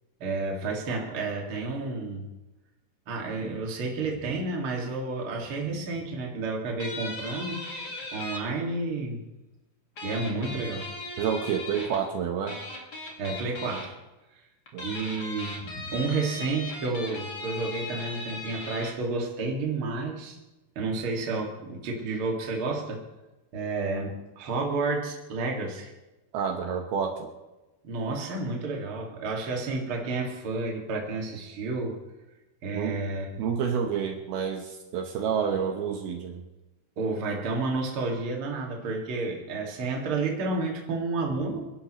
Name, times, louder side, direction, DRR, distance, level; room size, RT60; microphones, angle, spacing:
voice 1, 0.2-2.3 3.1-9.2 10.0-10.9 13.2-14.0 14.8-20.4 20.8-23.0 23.5-25.9 27.8-32.0 32.6-33.4 37.0-41.7, right 3 dB, 40° right, 0 dB, 2.3 m, -31 dB
sound 1, 6.8-8.4 10.0-12.0 12.5-13.9 14.7-18.9, left 2 dB, 45° left, 1.3 m, -38 dB
voice 2, 11.2-12.6 14.7-14.9 26.3-27.3 32.7-33.0 33.4-36.4, right 7 dB, 70° right, 3 dB, 2.8 m, -29 dB
27.0 x 11.0 x 3.1 m, 1.0 s
omnidirectional pair, 4.9 m